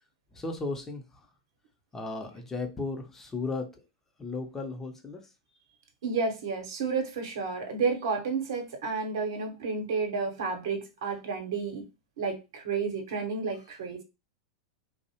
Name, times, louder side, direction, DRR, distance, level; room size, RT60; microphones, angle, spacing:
voice 1, 0.3-1.0 1.9-3.6 4.2-5.2, left 3 dB, 15° left, 0.6 m, -35 dB
voice 2, 6.0-11.8 12.2-14.0, right 4 dB, 65° right, 0.8 m, -31 dB
2.6 x 2.0 x 2.8 m
hypercardioid pair, 95°, 2 cm